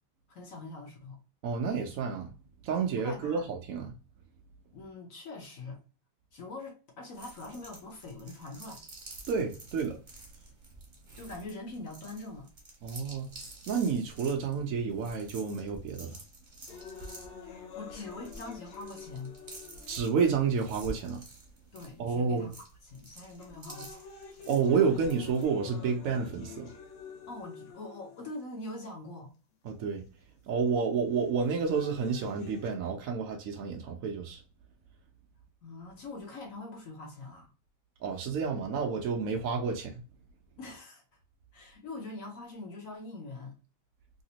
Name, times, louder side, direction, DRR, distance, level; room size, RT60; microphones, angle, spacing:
voice 1, 0.3-1.2 3.0-3.5 4.7-5.8 6.3-8.8 11.1-12.5 17.5-19.3 21.7-22.6 22.8-24.1 27.3-29.3 35.6-37.5 40.6-41.0 41.5-43.5, left 2 dB, 55° left, 1.1 m, -43 dB
voice 2, 1.4-2.3 2.6-3.9 9.3-10.0 12.8-13.3 13.7-16.2 19.9-21.2 22.0-22.5 24.5-26.7 29.6-30.0 30.5-34.4 38.0-39.9, right 5 dB, 80° right, 0.7 m, -30 dB
sound 1, 7.1-25.5, right 2 dB, 35° right, 0.8 m, -49 dB
sound 2, 16.7-20.7 21.4-21.5 22.4-22.7 23.2-28.7 29.7-29.8 31.2-32.7, left 6 dB, 90° left, 1.6 m, -48 dB
3.3 x 2.8 x 2.8 m
omnidirectional pair, 2.1 m